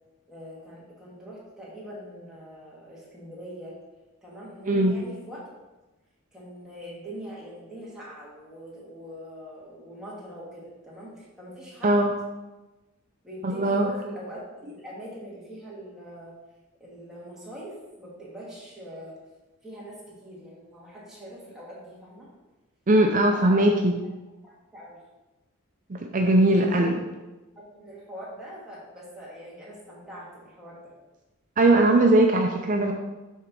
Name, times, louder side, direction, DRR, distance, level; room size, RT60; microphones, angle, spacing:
voice 1, 0.3-3.7 4.2-5.5 6.3-12.0 13.2-16.3 16.8-19.1 19.6-22.3 23.3-24.1 24.4-25.0 26.2-27.2 27.6-30.8, equal, 5° right, -7 dB, 2.0 m, -42 dB
voice 2, 13.4-13.9 22.9-23.9 25.9-27.0 31.6-32.9, right 1 dB, 35° right, 2 dB, 0.5 m, -20 dB
6.4 x 3.8 x 6.0 m, 1.1 s
head